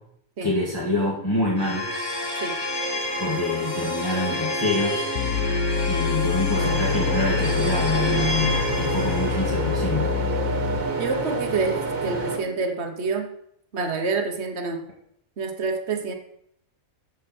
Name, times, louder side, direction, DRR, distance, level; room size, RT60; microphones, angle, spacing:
voice 1, 0.4-1.9 3.2-5.0 5.9-10.1, left 2 dB, 15° left, -5 dB, 1.9 m, -26 dB
sound 1, 1.6-12.6, equal, 50° left, 5.9 m, -29 dB
sound 2, 5.2-11.1, left 9 dB, 70° left, 1.1 m, -27 dB
sound 3, 6.5-12.4, right 4 dB, 70° right, 1.9 m, -29 dB
voice 2, 11.0-13.3 13.7-14.8 15.4-16.1, right 4 dB, 50° right, 5 dB, 1.4 m, -27 dB
14.5 x 6.7 x 4.4 m, 0.73 s
omnidirectional pair, 1.5 m